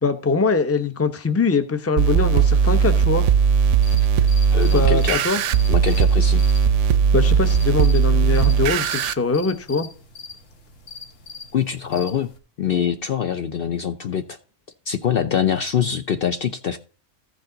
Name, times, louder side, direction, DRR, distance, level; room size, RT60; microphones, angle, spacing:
voice 1, 0.0-3.3 4.7-5.4 7.1-9.9, left 4 dB, 15° left, 9 dB, 0.7 m, -22 dB
sound 1, 2.0-9.1, right 7 dB, 75° right, 0.9 m, -18 dB
sound 2, 3.8-12.4, left 4 dB, 85° left, 2.0 m, -42 dB
voice 2, 4.5-5.2 5.7-6.4 11.5-12.3 12.6-14.4 14.9-16.8, left 8 dB, 55° left, 8 dB, 0.7 m, -24 dB
14.5 x 5.1 x 3.8 m, 0.38 s
omnidirectional pair, 1.3 m